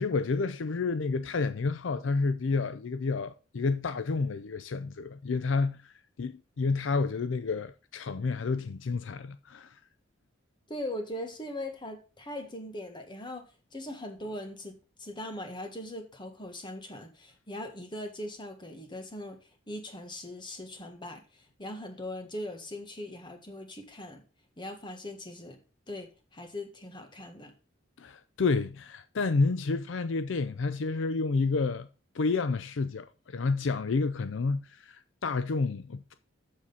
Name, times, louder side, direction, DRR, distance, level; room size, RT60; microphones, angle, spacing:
voice 1, 0.0-5.9 6.2-9.8 28.0-31.9 32.1-36.1, left 4 dB, 65° left, 0.5 m, -30 dB
voice 2, 10.7-19.4 19.7-24.2 24.6-25.6 25.9-27.5, left 1 dB, 25° left, 1.5 m, -40 dB
7.4 x 6.4 x 5.6 m
head